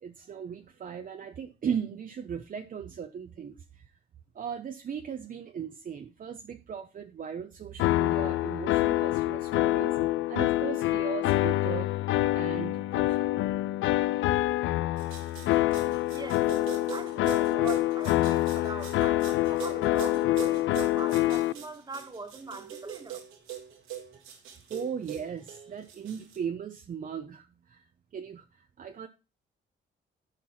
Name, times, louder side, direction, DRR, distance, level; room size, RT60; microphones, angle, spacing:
voice 1, 0.0-3.8 4.3-9.9 10.3-11.9 12.3-13.3 15.7-15.8 24.7-27.9 28.1-29.1, right 7 dB, 45° right, 0.8 m, -37 dB
sound 1, 7.8-21.5, left 16 dB, 80° left, 0.5 m, -26 dB
sound 2, 15.0-26.4, right 10 dB, 85° right, 2.3 m, -42 dB
voice 2, 15.8-23.2, right 3 dB, 20° right, 1.7 m, -42 dB
11.0 x 4.7 x 5.7 m
cardioid pair, 90°, 20 cm